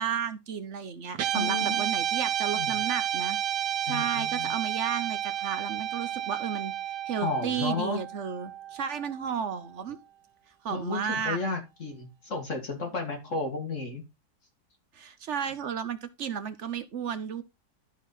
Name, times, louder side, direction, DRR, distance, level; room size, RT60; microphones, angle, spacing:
voice 1, 0.0-3.4 3.8-6.7 7.1-10.0 10.6-11.4 14.9-17.4, right 7 dB, 55° right, 1.0 m, -33 dB
Guitar, 1.1-9.6, right 11 dB, 85° right, 1.4 m, -31 dB
voice 2, 1.3-1.9 2.5-2.7 3.9-4.5 7.2-8.0 10.7-14.0, left 3 dB, 50° left, 2.3 m, -33 dB
12.5 x 4.3 x 4.0 m
omnidirectional pair, 1.8 m